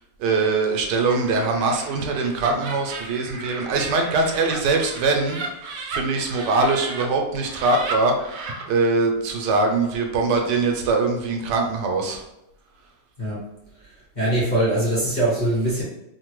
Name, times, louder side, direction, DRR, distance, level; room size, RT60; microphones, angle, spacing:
voice 1, 0.2-12.2, right 3 dB, 85° right, 2 dB, 1.2 m, -22 dB
Laughter, 0.9-7.0 7.4-8.6, right 4 dB, 70° right, 0.9 m, -35 dB
voice 2, 13.8-15.8, right 1 dB, 35° left, -10 dB, 0.8 m, -23 dB
3.0 x 2.2 x 3.0 m, 0.88 s
omnidirectional pair, 1.8 m